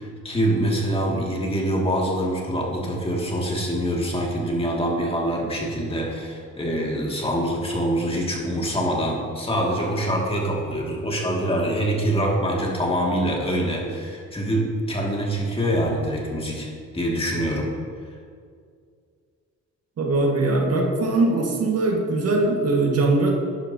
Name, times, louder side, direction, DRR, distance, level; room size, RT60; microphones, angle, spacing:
voice 1, 0.0-16.7 16.9-17.7, equal, 20° left, -2 dB, 2.1 m, -25 dB
voice 2, 20.0-23.3, right 2 dB, 55° right, 0 dB, 1.7 m, -21 dB
11.5 x 10.0 x 2.8 m, 2.2 s
cardioid pair, 90°, 30 cm